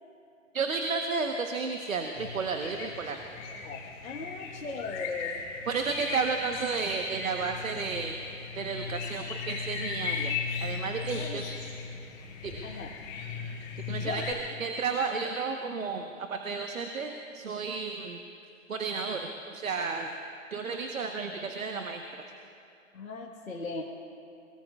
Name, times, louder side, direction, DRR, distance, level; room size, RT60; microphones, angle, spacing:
voice 1, 0.5-3.2 5.7-8.1 8.5-10.3 10.6-11.4 12.4-12.6 13.9-14.2 14.6-18.2 18.7-20.1 20.5-22.0, right 4 dB, 75° right, 4 dB, 1.2 m, -32 dB
sound 1, 2.1-14.3, left 6 dB, 30° left, 2.4 m, -37 dB
voice 2, 3.5-5.4 11.1-11.4 12.6-12.9 14.0-14.2 22.9-23.8, left 4 dB, 85° left, -1 dB, 1.5 m, -38 dB
22.5 x 21.5 x 2.4 m, 2.5 s
figure-of-eight pair, 135°, 40 cm